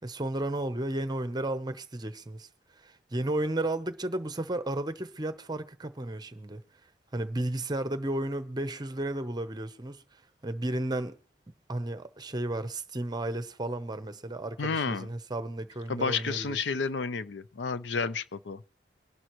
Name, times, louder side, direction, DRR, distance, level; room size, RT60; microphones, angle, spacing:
voice 1, 0.0-2.5 2.7-6.6 7.1-11.2 11.7-16.8, right 1 dB, 25° right, 0.8 m, -33 dB
voice 2, 14.6-15.1 15.9-18.6, left 5 dB, 90° left, 0.6 m, -31 dB
23.0 x 11.5 x 3.1 m
head